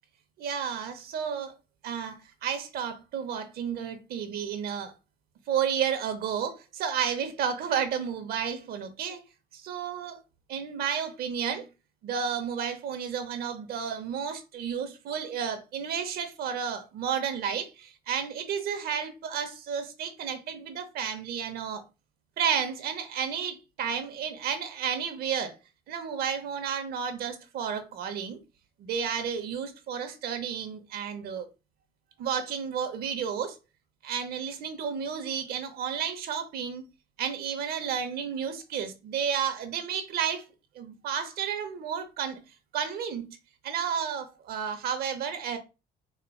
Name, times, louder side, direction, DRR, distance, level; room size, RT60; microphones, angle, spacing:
voice 1, 0.4-1.5 1.8-4.9 5.5-9.2 9.5-10.2 10.5-11.7 12.0-21.8 22.4-25.6 25.9-28.4 28.8-31.5 32.2-33.6 34.0-36.9 37.2-40.4 40.7-42.4 42.7-43.4 43.6-45.6, right 7 dB, 65° right, 0.8 m, -32 dB
4.4 x 2.4 x 2.2 m
cardioid pair, 110°, 17 cm